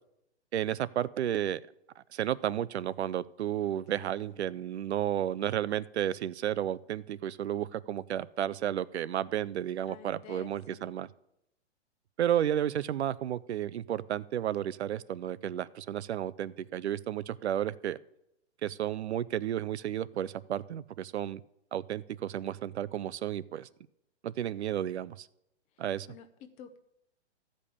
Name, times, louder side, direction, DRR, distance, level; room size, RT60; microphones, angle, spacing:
voice 1, 0.5-1.6 2.0-11.1 12.2-18.0 18.6-21.4 21.7-23.7 24.2-25.3 25.8-26.1, right 11 dB, 70° right, 19 dB, 0.7 m, -32 dB
voice 2, 3.9-4.4 9.8-11.0 26.1-26.8, left 9 dB, 20° left, 9 dB, 0.8 m, -51 dB
14.0 x 5.4 x 8.4 m, 0.81 s
hypercardioid pair, 145°, 35 cm